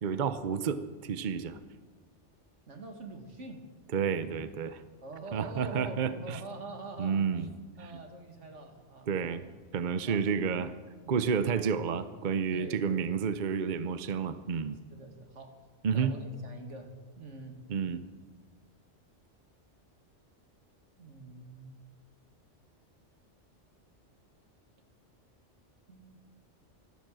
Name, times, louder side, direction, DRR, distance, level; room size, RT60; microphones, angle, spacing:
voice 1, 0.0-1.6 3.9-4.8 5.3-6.4 7.0-7.5 7.9-8.0 9.1-9.4 9.7-10.7 11.1-14.8 15.8-16.2 17.7-18.0, right 6 dB, 45° right, 12 dB, 0.8 m, -30 dB
voice 2, 2.7-3.6 5.0-7.3 7.8-9.4 10.0-10.2 12.5-13.2 14.9-15.6 15.9-17.6 21.0-21.8 25.9-26.2, right 3 dB, 85° right, 4 dB, 2.3 m, -45 dB
15.0 x 12.5 x 7.5 m, 1.4 s
omnidirectional pair, 1.2 m